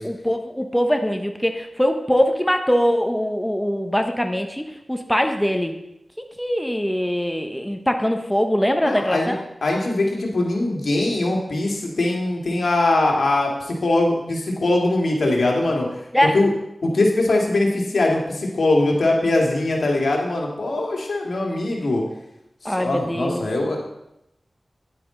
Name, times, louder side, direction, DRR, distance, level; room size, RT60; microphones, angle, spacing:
voice 1, 0.0-5.7 6.4-9.4 16.1-16.4 22.6-23.5, equal, 5° left, 5 dB, 0.9 m, -22 dB
voice 2, 8.8-9.4 9.6-15.9 16.3-16.5 16.8-22.0 22.6-23.8, left 2 dB, 85° left, -1 dB, 1.9 m, -21 dB
10.0 x 8.5 x 3.8 m, 0.84 s
wide cardioid pair, 55°, 0 cm